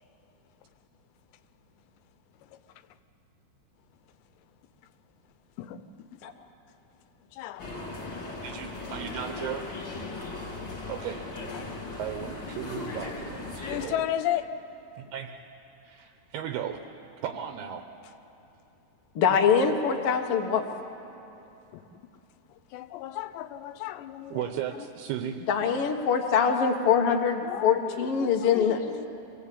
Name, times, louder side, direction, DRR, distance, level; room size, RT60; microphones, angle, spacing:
voice 1, 5.6-6.2 7.3-7.7 13.7-14.5 21.7-21.9 22.5-24.9 25.6-25.7 27.4-29.1, left 12 dB, 90° left, 3.0 m, -35 dB
sound 1, 7.6-13.9, left 3 dB, 30° left, 3.1 m, -37 dB
voice 2, 8.4-9.7 10.9-11.2 12.0-13.9 15.0-15.3 15.8-16.8 17.2-17.8 24.3-25.4, right 10 dB, 75° right, 2.8 m, -35 dB
voice 3, 19.1-20.6 25.5-28.8, left 6 dB, 70° left, 1.4 m, -24 dB
24.5 x 18.0 x 8.6 m
omnidirectional pair, 4.8 m